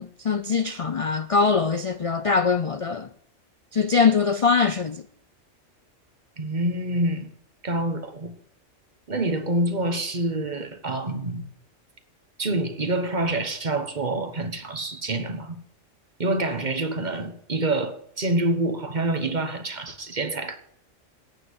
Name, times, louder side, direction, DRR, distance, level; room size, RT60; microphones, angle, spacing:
voice 1, 0.0-3.1 3.7-5.1, left 5 dB, 60° left, 0.3 m, -22 dB
voice 2, 6.4-7.3 7.6-8.3 9.1-11.4 12.4-15.6 16.2-20.6, right 2 dB, 35° right, 1.3 m, -27 dB
9.7 x 8.8 x 8.0 m
omnidirectional pair, 1.3 m